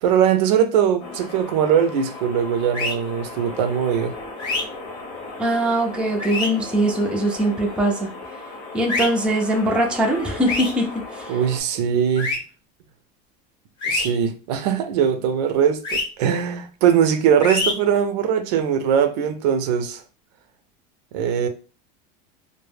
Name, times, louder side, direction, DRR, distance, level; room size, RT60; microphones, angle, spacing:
voice 1, 0.0-4.1 11.3-12.4 13.9-20.0 21.1-21.5, right 8 dB, 80° right, 0.5 m, -21 dB
sound 1, 1.0-11.6, left 3 dB, 70° left, 0.9 m, -36 dB
sound 2, 2.7-2.9 4.4-4.6 6.2-6.5 8.9-9.1 10.5-10.7 12.2-12.4 13.8-14.1 15.8-16.0 17.4-17.7, left 3 dB, 25° left, 0.7 m, -24 dB
voice 2, 5.4-8.1 8.7-11.4, right 1 dB, 5° right, 0.4 m, -22 dB
2.1 x 2.1 x 3.1 m
supercardioid pair, 145°, 20 cm